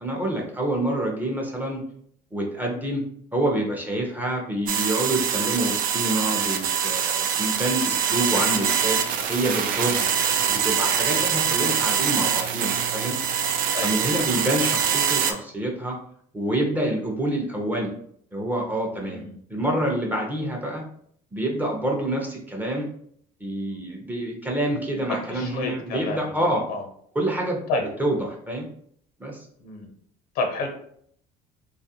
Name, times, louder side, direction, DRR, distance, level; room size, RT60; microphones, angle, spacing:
voice 1, 0.0-1.8 2.3-3.0 3.3-10.0 10.5-13.2 13.8-16.0 16.3-17.9 18.3-19.2 19.5-20.8 21.3-22.9 23.4-26.7 27.1-28.7 29.2-29.5, right 1 dB, 10° right, -1 dB, 0.6 m, -27 dB
sound 1, 4.7-15.3, right 8 dB, 60° right, 0.4 m, -24 dB
voice 2, 19.0-19.4 24.9-25.0 25.3-26.8 27.7-27.8 29.6-29.9 30.3-30.7, left 3 dB, 85° left, 3 dB, 0.9 m, -30 dB
3.0 x 2.4 x 2.7 m, 0.64 s
cardioid pair, 130°, 16 cm